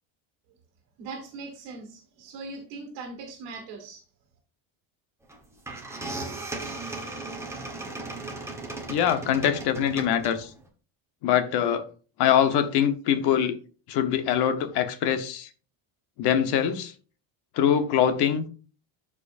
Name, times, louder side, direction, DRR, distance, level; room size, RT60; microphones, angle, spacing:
voice 1, 1.0-4.0, right 3 dB, 55° right, 2.1 m, -40 dB
sound 1, 5.3-5.4 5.7-10.6, right 2 dB, 5° right, 1.2 m, -36 dB
voice 2, 8.9-10.5 11.2-11.8 12.2-13.6 13.9-15.5 16.2-16.9 17.6-18.4, left 9 dB, 50° left, 1.1 m, -23 dB
13.0 x 4.9 x 2.6 m
cardioid pair, 175°, 50 cm